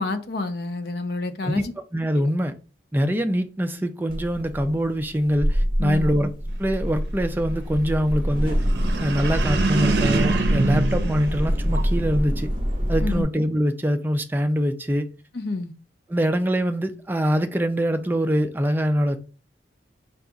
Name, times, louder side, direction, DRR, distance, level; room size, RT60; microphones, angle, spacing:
voice 1, 0.0-1.7 2.1-2.3 5.8-6.1 13.0-13.2 15.3-15.7, left 3 dB, 55° left, 0.5 m, -29 dB
voice 2, 1.9-2.5 2.9-6.3 6.6-8.6 9.0-12.5 12.9-15.1 16.1-19.2, equal, 10° right, 0.3 m, -24 dB
sound 1, 4.1-13.2, equal, 25° right, 0.8 m, -25 dB
sound 2, 8.5-12.1, right 3 dB, 60° right, 0.6 m, -25 dB
4.6 x 2.3 x 3.9 m
head